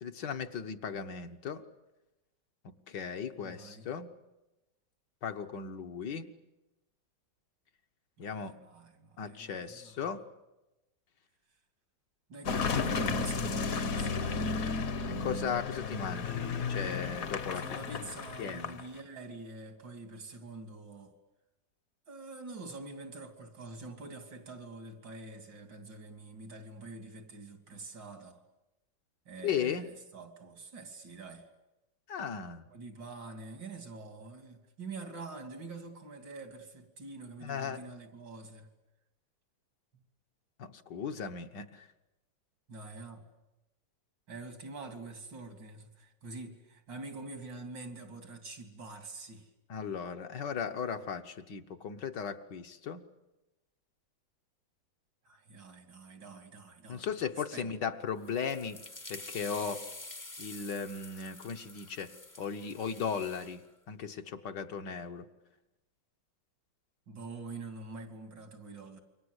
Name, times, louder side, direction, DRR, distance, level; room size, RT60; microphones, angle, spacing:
voice 1, 0.0-1.6 2.9-4.1 5.2-6.3 8.2-8.6 9.2-10.2 15.1-17.6 18.4-18.8 29.4-29.9 32.1-32.6 37.4-37.8 40.6-41.8 49.7-53.0 56.9-58.8 59.1-59.9 60.4-62.1 62.4-63.6 63.9-65.3, left 6 dB, 70° left, 1.9 m, -36 dB
voice 2, 3.4-3.9 8.2-10.2 12.3-14.5 17.6-21.1 22.1-28.4 29.3-31.5 32.7-38.7 39.9-40.0 42.7-43.2 44.3-49.5 55.3-57.2 57.5-57.8 67.1-69.0, right 3 dB, 90° right, 3.6 m, -46 dB
Car passing by / Engine, 12.5-19.0, left 4 dB, 55° left, 1.4 m, -33 dB
sound 1, 58.2-63.6, left 2 dB, 25° left, 0.4 m, -48 dB
28.0 x 24.0 x 8.2 m
omnidirectional pair, 1.9 m